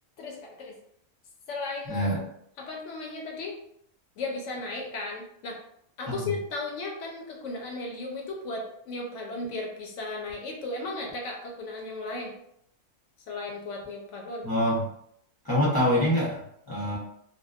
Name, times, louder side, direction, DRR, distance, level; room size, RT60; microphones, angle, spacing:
voice 1, 0.2-0.7 1.5-2.2 2.6-3.6 4.2-5.6 6.0-12.3 13.3-14.5, left 2 dB, 70° left, 0 dB, 0.8 m, -35 dB
voice 2, 1.9-2.2 6.1-6.3 14.4-14.8 15.4-17.0, equal, 30° left, -8 dB, 0.4 m, -25 dB
2.6 x 2.1 x 2.4 m, 0.72 s
omnidirectional pair, 1.4 m